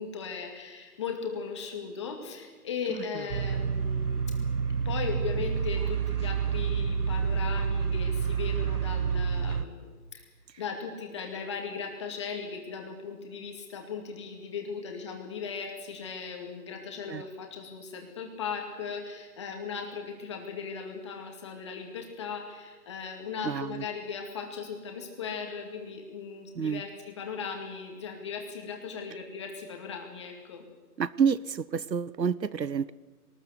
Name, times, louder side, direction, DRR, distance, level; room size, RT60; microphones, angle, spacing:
voice 1, 0.0-4.2 4.8-10.2 10.6-30.6, left 6 dB, 15° left, 3 dB, 2.2 m, -38 dB
sound 1, 3.3-9.6, right 6 dB, 65° right, 1.5 m, -28 dB
voice 2, 23.4-23.8 26.5-26.8 31.0-32.9, right 6 dB, 85° right, 19 dB, 1.0 m, -29 dB
22.5 x 19.5 x 8.2 m, 1.3 s
figure-of-eight pair, 165°, 49 cm